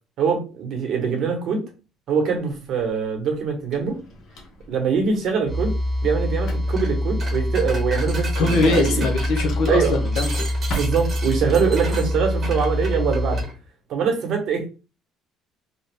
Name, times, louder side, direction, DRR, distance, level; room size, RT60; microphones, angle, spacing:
voice 1, 0.2-1.6 2.1-4.0 4.7-5.7 6.0-9.1 9.7-9.9 10.7-13.4 13.9-14.7, right 6 dB, 55° right, 1.1 m, -23 dB
Drawer open or close, 2.3-11.7, equal, 55° left, 1.0 m, -40 dB
sound 1, 5.5-13.4, left 1 dB, 5° right, 0.6 m, -25 dB
sound 2, 6.7-6.9 7.2-13.5, right 3 dB, 30° right, 1.1 m, -35 dB
voice 2, 8.4-10.5, left 3 dB, 85° left, 0.9 m, -22 dB
2.9 x 2.3 x 3.4 m
cardioid pair, 120°, 0 cm